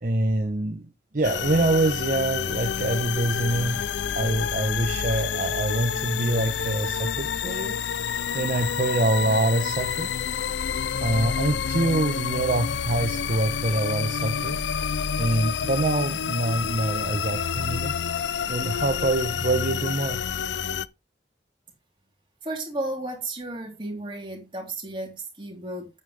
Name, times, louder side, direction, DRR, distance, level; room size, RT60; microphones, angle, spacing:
voice 1, 0.0-3.8 4.1-7.8 8.3-10.1 11.0-14.6 15.2-17.9 18.4-20.2, right 2 dB, 50° right, 0.9 m, -25 dB
sound 1, 1.2-20.9, left 7 dB, 90° left, 0.5 m, -28 dB
voice 2, 22.4-25.9, right 2 dB, 30° right, 3.6 m, -33 dB
9.3 x 8.9 x 3.3 m
head